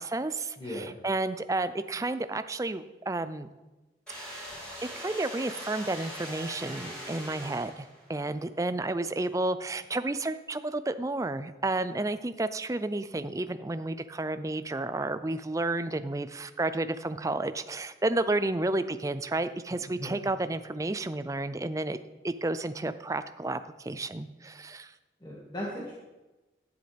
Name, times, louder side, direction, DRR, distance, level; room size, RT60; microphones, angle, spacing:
voice 1, 0.0-3.5 5.0-22.0 22.2-24.9, right 2 dB, 20° right, 11 dB, 0.4 m, -31 dB
voice 2, 0.6-1.0 19.7-20.2 25.2-25.9, left 1 dB, 25° left, -5 dB, 1.8 m, -38 dB
sound 1, 4.1-8.1, equal, 5° left, 4.3 m, -41 dB
12.5 x 10.0 x 3.4 m, 1.1 s
head